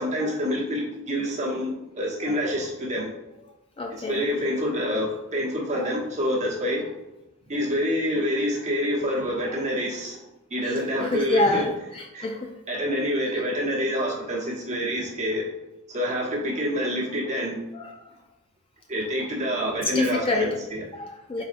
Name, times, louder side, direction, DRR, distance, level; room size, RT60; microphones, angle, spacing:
voice 1, 0.0-3.1 3.9-6.9 7.5-10.2 10.5-11.6 12.1-12.3 12.7-15.4 15.9-17.6 18.9-20.9, equal, 35° right, -4 dB, 1.2 m, -27 dB
voice 2, 3.8-4.3 5.7-5.9 9.5-9.6 10.6-12.5 17.8-18.0 19.9-20.5 20.9-21.4, left 2 dB, 25° left, 2 dB, 0.3 m, -28 dB
4.7 x 4.1 x 2.5 m, 0.97 s
head